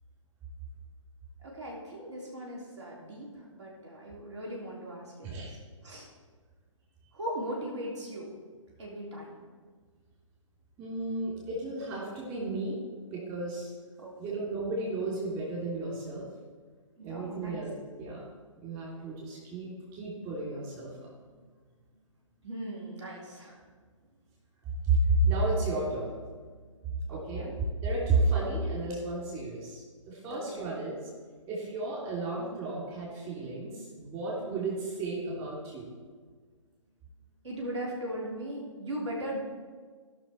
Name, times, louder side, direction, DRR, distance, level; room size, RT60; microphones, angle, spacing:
voice 1, 1.4-5.6 5.8-6.1 7.1-8.3 8.8-9.5 14.0-14.4 17.0-17.6 22.4-23.6 27.1-27.5 30.2-30.7 37.4-39.4, right 1 dB, 60° right, -3 dB, 3.3 m, -39 dB
voice 2, 10.8-13.7 14.2-16.3 17.0-18.3 18.6-21.1 24.8-26.1 26.6-27.5 27.8-31.1 31.5-35.9, right 2 dB, 25° right, -5 dB, 3.3 m, -32 dB
17.5 x 6.1 x 4.4 m, 1.5 s
figure-of-eight pair, 130°, 17 cm